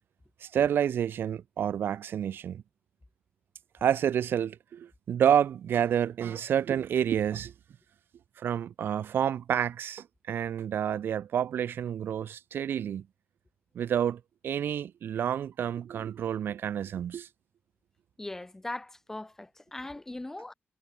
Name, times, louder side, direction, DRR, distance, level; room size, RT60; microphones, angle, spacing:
voice 1, 0.4-2.6 3.8-7.5 8.4-13.0 13.7-17.3, right 9 dB, 65° right, 3.1 m, -29 dB
voice 2, 18.2-20.5, left 2 dB, 10° left, 6.9 m, -39 dB
wide cardioid pair, 180°, 4 cm